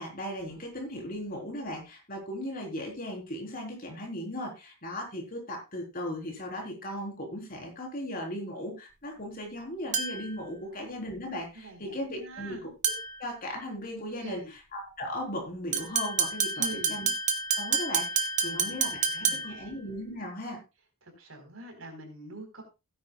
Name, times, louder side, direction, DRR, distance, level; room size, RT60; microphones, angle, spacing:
voice 1, 0.0-12.7 13.2-14.4 14.7-16.6 16.9-17.1 17.6-20.6, equal, 40° left, 0 dB, 4.1 m, -37 dB
sound 1, 9.9-10.4 12.8-13.2 15.7-19.7, right 5 dB, 35° right, 1.3 m, -29 dB
voice 2, 11.5-12.7 14.2-14.5 16.5-17.0 18.4-19.8 21.0-22.6, right 1 dB, 65° right, 4 dB, 4.2 m, -44 dB
16.5 x 10.0 x 2.4 m, 0.26 s
head